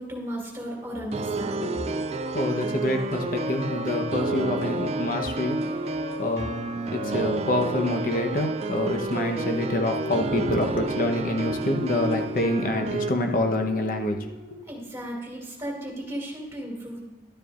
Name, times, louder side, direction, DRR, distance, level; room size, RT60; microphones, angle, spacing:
voice 1, 0.0-1.8 14.7-17.0, equal, 15° right, -2 dB, 2.4 m, -35 dB
sound 1, 0.9-15.4, left 2 dB, 85° left, 2.1 m, -39 dB
sound 2, 1.1-13.1, right 3 dB, 35° right, 0.3 m, -30 dB
voice 2, 2.3-5.6 6.2-6.6 6.9-14.6, left 1 dB, 50° left, 4 dB, 1.0 m, -26 dB
12.0 x 9.8 x 2.5 m, 1.1 s
head